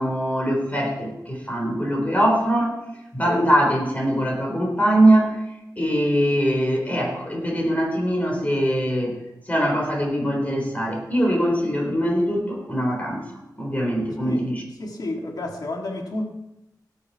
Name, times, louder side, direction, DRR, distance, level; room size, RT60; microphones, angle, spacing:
voice 1, 0.0-2.8 3.1-5.4 5.8-9.2 9.5-13.2 13.6-14.6, equal, 20° left, 0 dB, 3.7 m, -22 dB
voice 2, 14.8-16.3, left 2 dB, 65° left, 2 dB, 1.9 m, -30 dB
17.0 x 7.4 x 4.7 m, 0.91 s
wide cardioid pair, 115°, 7 cm